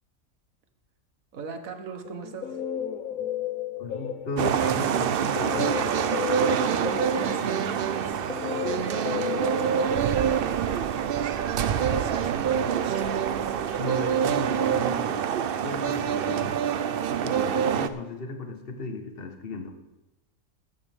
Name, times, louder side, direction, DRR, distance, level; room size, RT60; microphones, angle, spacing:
voice 1, 1.3-2.6 6.4-7.9 8.5-10.9 11.6-12.8, right 5 dB, 75° right, 6 dB, 1.6 m, -39 dB
Guitar, 2.1-4.6 5.3-10.8, left 9 dB, 80° left, 1.3 m, -33 dB
voice 2, 3.8-5.7 13.8-15.2 15.6-16.6 17.1-19.7, left 2 dB, 45° left, 5 dB, 1.4 m, -35 dB
sound 1, 4.4-17.9, right 8 dB, 60° right, 0.6 m, -26 dB
sound 2, 10.1-10.2 10.5-10.8 11.3-11.6 12.1-12.3 12.8-13.0 13.5-13.9 14.2-14.5 15.0-15.3 15.7-15.9, right 1 dB, 30° right, 3.4 m, -50 dB
14.5 x 11.0 x 3.5 m, 1.0 s
omnidirectional pair, 1.4 m